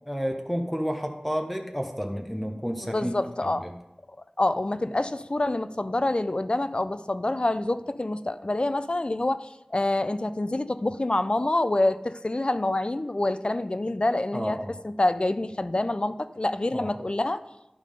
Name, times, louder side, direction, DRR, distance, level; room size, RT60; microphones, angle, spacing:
voice 1, 0.0-3.1 3.4-3.7 14.3-14.8 16.7-17.0, equal, 5° left, 3 dB, 0.9 m, -31 dB
voice 2, 2.9-3.7 4.4-14.6 14.8-17.4, left 2 dB, 45° left, 12 dB, 0.4 m, -26 dB
11.0 x 3.7 x 5.0 m, 0.94 s
wide cardioid pair, 40°, 2 cm